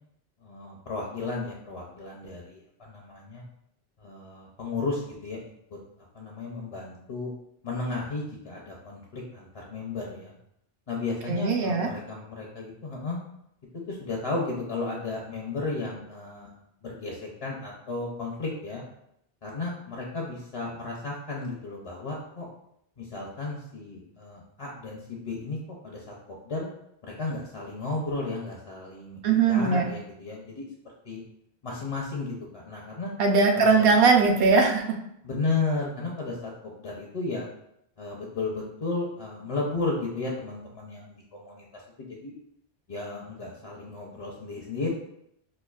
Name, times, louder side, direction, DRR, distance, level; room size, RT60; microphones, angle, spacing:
voice 1, 0.4-3.4 4.0-5.4 5.7-5.8 6.1-7.3 7.6-10.3 10.9-13.2 13.7-18.8 19.4-22.5 23.0-25.6 25.8-26.1 26.4-26.7 27.0-31.2 31.6-33.1 33.6-33.9 35.2-36.5 36.8-37.5 38.0-42.3 42.9-44.9, left 3 dB, 45° left, -2 dB, 0.5 m, -34 dB
voice 2, 11.3-11.9 29.2-29.9 33.2-35.0, right 4 dB, 70° right, 3 dB, 0.8 m, -20 dB
4.2 x 2.5 x 2.3 m, 0.76 s
omnidirectional pair, 1.0 m